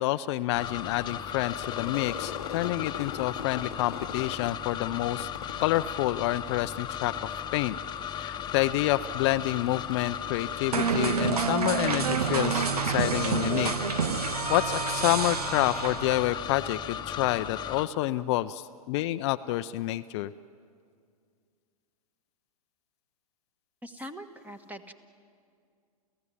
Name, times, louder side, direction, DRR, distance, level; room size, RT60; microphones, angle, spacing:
voice 1, 0.0-5.3 5.6-7.1 7.5-7.8 8.2-13.7 14.5-20.3, left 16 dB, 45° left, 11 dB, 0.6 m, -28 dB
sound 1, 0.5-17.9, left 9 dB, 25° left, 1.1 m, -36 dB
Crowd / Fireworks, 1.3-6.7 7.0-7.7 8.0-11.5, left 8 dB, 75° left, 0.9 m, -42 dB
sound 2, 10.7-16.4, right 6 dB, 80° right, 1.0 m, -28 dB
voice 2, 23.8-24.9, equal, 10° right, 10 dB, 1.4 m, -42 dB
30.0 x 15.5 x 9.9 m, 2.3 s
hypercardioid pair, 110°, 19 cm